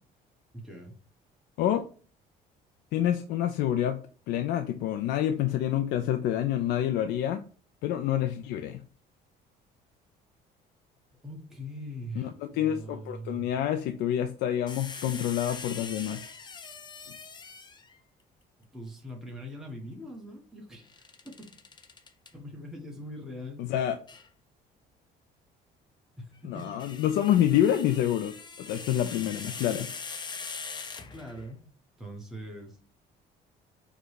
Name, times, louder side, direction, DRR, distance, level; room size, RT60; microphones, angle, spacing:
voice 1, 0.5-1.0 11.2-13.5 18.6-21.5 22.3-23.6 26.2-26.8 31.0-31.6 32.0-32.8, equal, ahead, -2 dB, 1.2 m, -42 dB
voice 2, 2.9-4.0 4.3-7.4 7.8-8.8 12.2-16.2 23.6-24.0 26.4-29.9, left 11 dB, 80° left, 6 dB, 0.5 m, -27 dB
sound 1, 14.7-18.0 20.9-22.3 24.1-24.3 26.4-31.5, left 4 dB, 25° left, 0.6 m, -42 dB
4.7 x 2.3 x 4.7 m, 0.40 s
cardioid pair, 110°, 17 cm